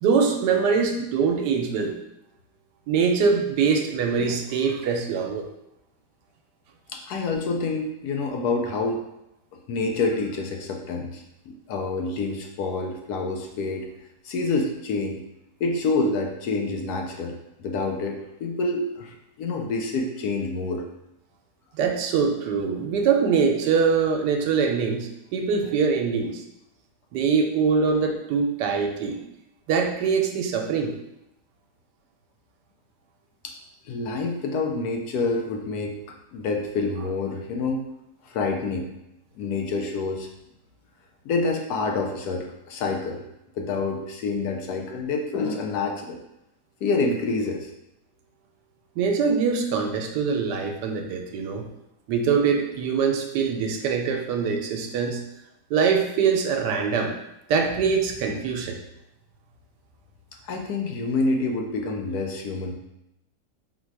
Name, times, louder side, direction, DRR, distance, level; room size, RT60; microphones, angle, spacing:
voice 1, 0.0-2.0 2.9-5.4 21.8-26.4 27.1-29.2 29.7-30.9 49.0-51.7 52.1-55.2 55.7-57.1 57.5-58.8, right 5 dB, 80° right, 3 dB, 1.2 m, -23 dB
voice 2, 6.9-9.0 9.7-13.9 14.2-15.2 15.6-20.9 33.4-33.5 33.8-37.9 38.2-38.9 39.4-40.3 41.2-43.2 43.5-46.2 46.8-47.7 60.4-62.7, left 3 dB, 70° left, 2 dB, 1.1 m, -27 dB
4.0 x 2.3 x 4.6 m, 0.86 s
omnidirectional pair, 1.8 m